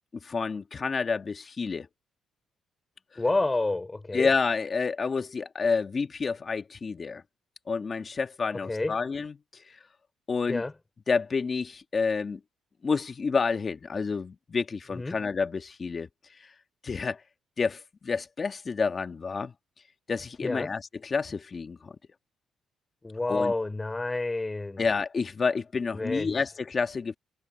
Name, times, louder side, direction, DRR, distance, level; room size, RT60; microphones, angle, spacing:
voice 1, 0.2-1.9 4.1-7.2 7.7-9.8 10.3-10.6 11.1-12.4 12.8-16.1 16.4-16.5 16.8-17.2 17.6-19.5 20.1-21.9 23.3-23.5 24.8-27.2, left 5 dB, 35° left, 1.5 m, -29 dB
voice 2, 3.2-4.3 8.7-9.0 10.5-10.7 14.9-15.2 20.4-20.7 23.0-24.8 25.9-26.3, left 2 dB, 20° left, 4.7 m, -29 dB
cardioid pair, 90°, 0 cm